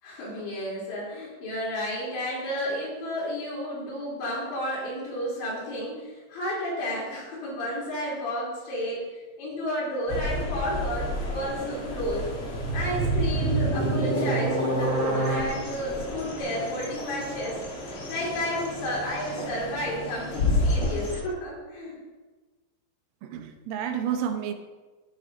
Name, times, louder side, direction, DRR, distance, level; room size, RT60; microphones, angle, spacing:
voice 1, 0.0-9.0 9.4-12.3 12.7-17.6 18.1-22.0, equal, 60° left, -6 dB, 5.7 m, -32 dB
sound 1, 10.1-21.2, left 2 dB, 85° left, 1.2 m, -32 dB
sound 2, 12.2-15.4, right 2 dB, 25° right, 3.2 m, -26 dB
voice 2, 23.2-24.5, right 8 dB, 85° right, 6 dB, 3.5 m, -30 dB
15.5 x 7.1 x 3.8 m, 1.3 s
omnidirectional pair, 5.9 m